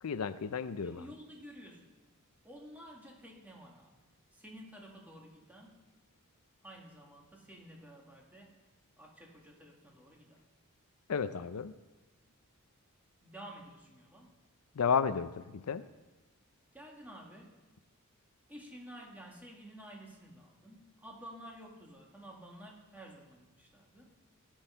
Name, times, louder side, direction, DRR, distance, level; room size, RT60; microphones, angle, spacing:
voice 1, 0.0-1.0 11.1-11.7 14.8-15.8, left 6 dB, 85° left, 13 dB, 0.5 m, -32 dB
voice 2, 0.8-1.9 2.4-4.0 4.3-5.8 6.6-8.6 9.0-10.4 13.2-14.3 16.7-17.5 18.5-24.1, equal, 10° right, -1 dB, 1.8 m, -51 dB
16.5 x 6.3 x 5.6 m, 1.2 s
head